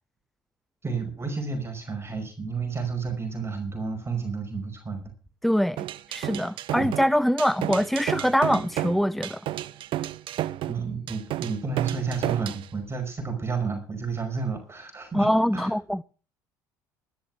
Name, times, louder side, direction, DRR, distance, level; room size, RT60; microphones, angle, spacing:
voice 1, 0.8-5.1 6.8-6.9 10.7-15.7, right 5 dB, 25° right, 5.3 m, -31 dB
voice 2, 5.4-5.8 6.1-9.4 15.1-16.0, equal, ahead, 0.6 m, -23 dB
sound 1, 5.8-12.7, right 14 dB, 55° right, 0.8 m, -31 dB
13.0 x 11.0 x 6.1 m
hypercardioid pair, 70°, 10 cm